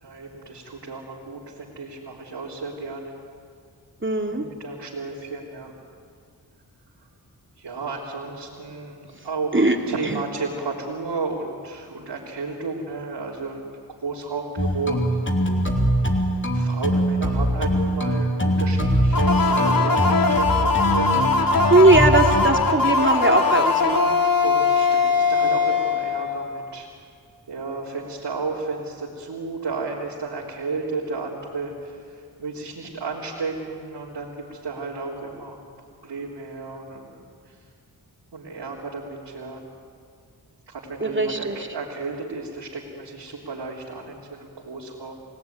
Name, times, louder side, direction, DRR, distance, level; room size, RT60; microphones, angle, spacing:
voice 1, 0.0-3.2 4.3-5.7 7.0-7.1 7.6-13.7 14.0-15.4 16.5-21.2 24.4-26.9 27.5-35.6 36.0-37.6 38.3-39.6 40.7-45.2, right 3 dB, 85° right, -5 dB, 3.7 m, -33 dB
voice 2, 4.0-4.5 9.5-9.8 10.1-10.2 21.7-24.0 41.0-41.6, right 2 dB, 30° right, 3 dB, 3.0 m, -19 dB
sound 1, 14.6-22.5, equal, 30° left, 3.3 m, -22 dB
sound 2, 19.1-26.7, left 4 dB, 55° left, 3.0 m, -21 dB
30.0 x 18.5 x 9.6 m, 2.2 s
cardioid pair, 45°, 41 cm